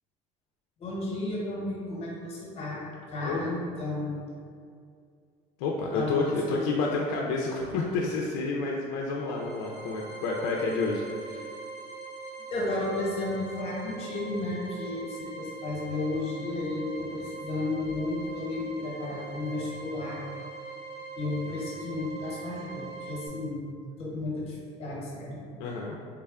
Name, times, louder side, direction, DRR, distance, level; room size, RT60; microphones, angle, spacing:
voice 1, 0.8-4.1 5.9-6.8 12.5-20.2 21.1-22.8 23.1-23.6 24.0-25.4, left 2 dB, 40° left, -4 dB, 0.9 m, -33 dB
voice 2, 5.6-11.5 25.6-25.9, left 3 dB, 90° left, -2 dB, 0.4 m, -29 dB
sound 1, 9.1-23.3, right 4 dB, 55° right, 1.4 m, -42 dB
3.5 x 2.2 x 3.5 m, 2.2 s
cardioid pair, 140°, 16 cm